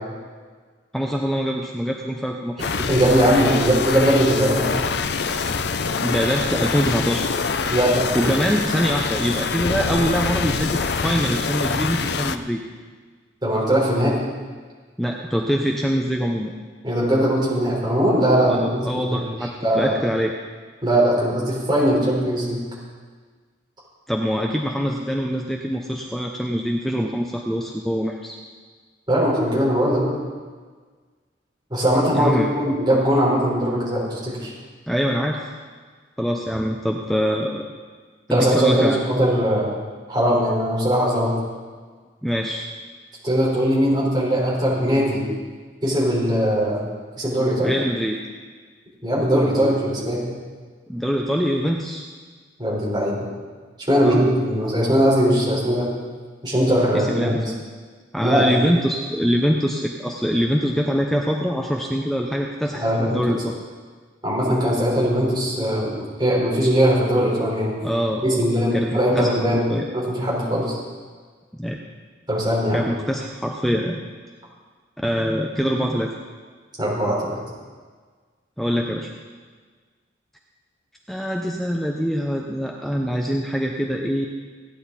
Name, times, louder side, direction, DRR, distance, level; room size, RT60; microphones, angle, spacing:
voice 1, 0.9-2.7 3.2-3.6 6.0-7.3 8.1-12.6 15.0-16.5 18.5-20.3 24.1-28.4 32.1-32.5 34.9-35.5 36.2-37.7 38.3-39.0 42.2-42.7 47.6-48.2 50.9-52.0 54.0-54.2 56.9-57.6 58.1-63.5 67.8-68.5 68.7-69.3 69.7-69.9 71.6-71.8 72.7-74.0 75.0-76.2 78.6-79.1 81.1-84.3, equal, ahead, 0 dB, 0.7 m, -24 dB
sound 1, 2.6-12.4, left 5 dB, 55° left, 0.6 m, -25 dB
voice 2, 2.9-4.7 7.7-8.2 13.4-14.2 16.8-19.3 19.6-19.9 20.8-22.6 29.1-30.1 31.7-34.5 38.3-39.7 40.1-41.3 43.2-45.2 45.8-46.8 47.2-47.7 49.0-50.2 52.6-53.3 53.9-55.9 56.4-57.3 58.2-58.7 62.7-63.2 64.2-65.9 66.2-67.7 68.2-69.6 69.9-70.8 72.3-72.8 76.8-77.4, equal, 25° right, -6 dB, 4.6 m, -20 dB
17.0 x 10.0 x 4.2 m, 1.5 s
head